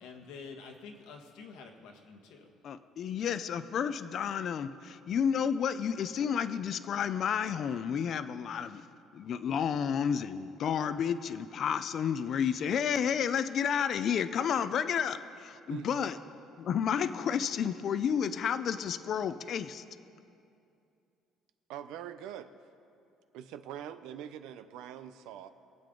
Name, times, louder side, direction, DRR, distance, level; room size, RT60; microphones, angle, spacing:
voice 1, 0.0-2.5, left 5 dB, 85° left, 3 dB, 1.5 m, -48 dB
voice 2, 2.6-8.8 9.1-16.2 16.6-19.8, left 7 dB, 45° left, 12 dB, 0.5 m, -31 dB
voice 3, 15.7-16.1 21.7-22.5 23.3-25.5, right 10 dB, 80° right, 11 dB, 0.7 m, -43 dB
25.0 x 8.6 x 3.9 m, 2.6 s
cardioid pair, 135°, 0 cm